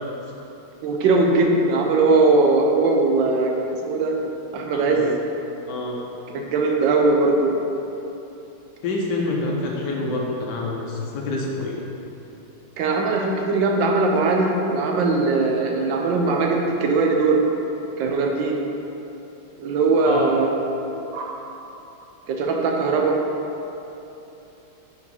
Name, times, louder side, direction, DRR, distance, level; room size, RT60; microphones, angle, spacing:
voice 1, 0.8-3.5 3.9-4.1 4.5-5.1 6.3-7.5 12.8-17.4 18.0-18.6 19.6-20.5 21.1-21.3 22.3-23.2, right 3 dB, 75° right, 1 dB, 1.3 m, -20 dB
voice 2, 4.7-5.2 5.7-6.0 8.8-11.9 20.0-20.3, left 2 dB, 70° left, -1 dB, 1.2 m, -27 dB
4.8 x 4.7 x 5.4 m, 3.0 s
omnidirectional pair, 2.1 m